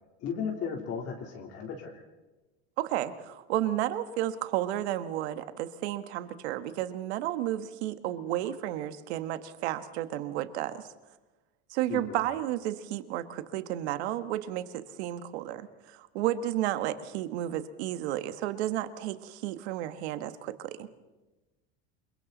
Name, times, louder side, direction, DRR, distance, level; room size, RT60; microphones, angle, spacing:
voice 1, 0.2-2.0 11.9-12.2, left 6 dB, 45° left, 0 dB, 3.5 m, -35 dB
voice 2, 2.8-10.9 11.7-20.9, right 13 dB, 85° right, 10 dB, 1.4 m, -32 dB
28.5 x 23.0 x 4.1 m, 1.1 s
supercardioid pair, 135°, 32 cm